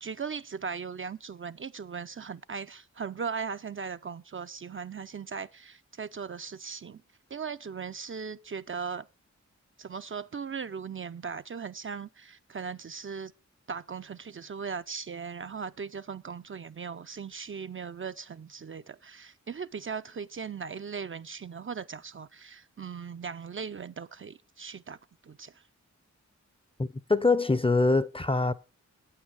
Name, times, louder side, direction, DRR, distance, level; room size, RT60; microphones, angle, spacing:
voice 1, 0.0-7.0 7.3-9.1 9.8-13.3 13.7-25.0 25.2-25.6, right 6 dB, 45° right, 0.5 m, -38 dB
voice 2, 26.8-28.5, left 3 dB, 20° left, 0.5 m, -24 dB
8.8 x 8.6 x 4.7 m
cardioid pair, 50°, 30 cm